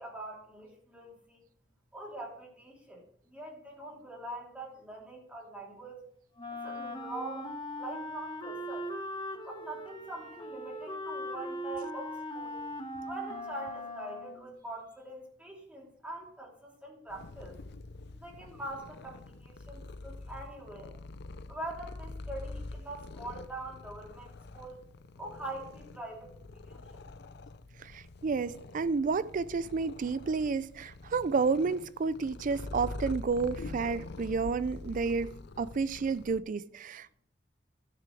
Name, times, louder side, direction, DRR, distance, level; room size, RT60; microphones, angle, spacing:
voice 1, 0.0-1.4 1.9-6.0 6.5-8.9 9.4-12.6 13.1-17.5 18.1-21.0 21.5-24.8 25.2-27.0, right 2 dB, 5° right, 3.1 m, -43 dB
Wind instrument woodwind instrument, 6.4-14.5, left 1 dB, 25° left, 1.3 m, -40 dB
Purr, 17.1-36.4, left 2 dB, 60° left, 0.5 m, -45 dB
voice 2, 27.8-37.2, right 4 dB, 45° right, 0.4 m, -31 dB
13.0 x 6.8 x 4.7 m
head